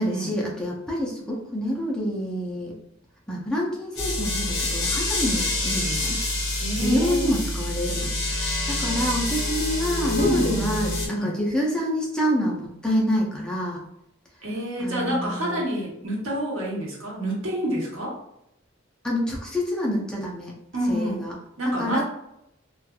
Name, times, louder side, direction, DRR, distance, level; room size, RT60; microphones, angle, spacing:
voice 1, 0.0-2.8 3.3-6.2 6.8-8.1 8.3-13.8 14.8-15.6 19.0-20.5 20.9-21.4 21.8-22.0, equal, 5° left, -3 dB, 0.5 m, -27 dB
sound 1, 4.0-11.1, left 2 dB, 60° left, 1.0 m, -26 dB
voice 2, 6.6-7.3 10.2-10.6 11.1-11.3 14.4-18.2 20.7-21.2 21.6-22.0, right 1 dB, 85° right, -3 dB, 1.0 m, -28 dB
3.0 x 2.4 x 2.3 m, 0.81 s
head